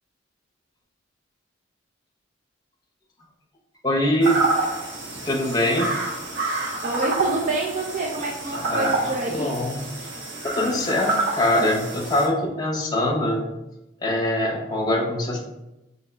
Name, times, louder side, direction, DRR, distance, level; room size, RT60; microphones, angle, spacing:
voice 1, 3.8-4.4 5.2-5.9 8.6-9.0 9.3-9.8 10.4-13.5 14.0-15.4, left 1 dB, 20° left, -2 dB, 0.9 m, -23 dB
sound 1, 4.2-12.3, right 3 dB, 75° right, 1.2 m, -28 dB
voice 2, 6.8-9.5, right 2 dB, 40° right, -2 dB, 0.5 m, -27 dB
3.6 x 2.9 x 4.3 m, 0.95 s
head